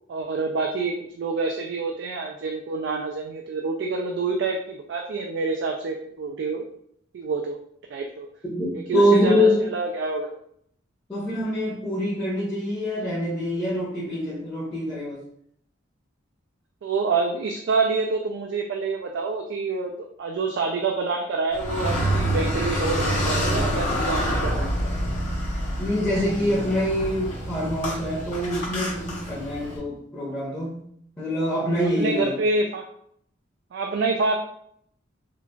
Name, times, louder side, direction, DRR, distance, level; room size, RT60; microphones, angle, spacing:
voice 1, 0.1-6.6 7.1-7.6 7.9-8.3 8.7-10.3 16.8-24.8 32.0-32.9 33.7-34.4, right 3 dB, 65° right, 1 dB, 0.3 m, -27 dB
voice 2, 8.5-9.6 11.1-15.2 25.8-30.9 31.2-32.4, equal, 10° left, -11 dB, 0.8 m, -25 dB
Car, 21.5-29.8, equal, 40° left, 1.0 m, -27 dB
3.8 x 2.3 x 2.2 m, 0.68 s
head